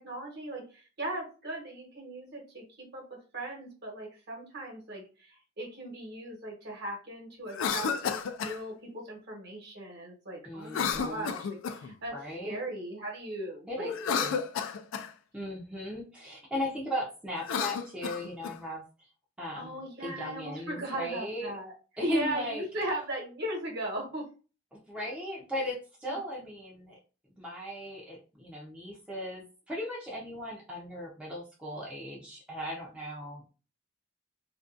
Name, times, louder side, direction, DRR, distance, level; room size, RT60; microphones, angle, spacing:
voice 1, 0.0-3.0 3.3-12.2 12.4-14.4 19.6-21.7 22.0-24.3, right 1 dB, 55° right, 0 dB, 1.0 m, -38 dB
Cough, 7.5-8.6 10.7-11.9 13.9-15.1 17.3-18.6, left 6 dB, 70° left, 0.3 m, -32 dB
voice 2, 10.4-11.3 12.1-12.6 13.7-14.4 15.3-19.1 19.4-21.5 22.0-22.6 24.9-27.0 27.4-33.5, left 1 dB, 5° right, -4 dB, 0.5 m, -37 dB
2.5 x 2.2 x 2.4 m, 0.34 s
head